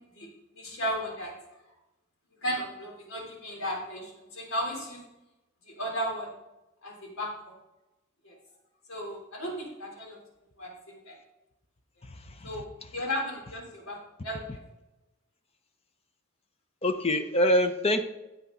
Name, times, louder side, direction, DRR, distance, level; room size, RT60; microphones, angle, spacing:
voice 1, 0.5-1.3 2.4-5.0 5.7-6.3 6.8-7.5 8.2-8.4 8.9-10.2 10.6-11.2 12.4-14.0 14.2-14.6, equal, 85° left, -1 dB, 3.7 m, -35 dB
voice 2, 12.0-12.5 16.8-18.0, left 1 dB, 30° left, 8 dB, 0.8 m, -25 dB
16.0 x 8.4 x 4.0 m, 1.0 s
head